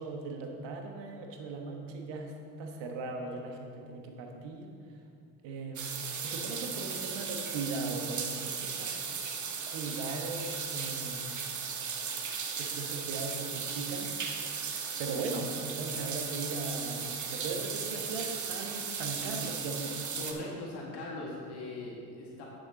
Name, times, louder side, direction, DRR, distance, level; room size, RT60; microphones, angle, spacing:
voice 1, 0.0-2.3 2.6-4.7 5.4-9.0 9.7-11.4 12.3-14.5 15.0-20.0, right 3 dB, 80° right, 3 dB, 1.3 m, -38 dB
sound 1, 5.8-20.3, right 6 dB, 40° right, 1.0 m, -36 dB
voice 2, 20.2-22.4, left 2 dB, 65° left, -3 dB, 1.8 m, -40 dB
9.7 x 7.1 x 3.8 m, 2.4 s
supercardioid pair, 60°, 43 cm